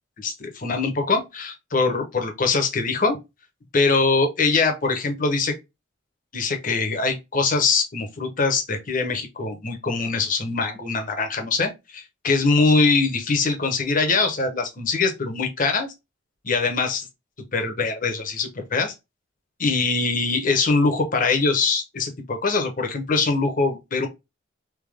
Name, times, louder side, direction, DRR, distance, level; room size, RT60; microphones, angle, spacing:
voice 1, 0.2-3.2 3.7-5.5 6.3-15.9 16.4-17.0 17.5-18.9 19.6-24.1, left 4 dB, 40° left, 0.9 m, -23 dB
3.6 x 2.9 x 3.3 m
head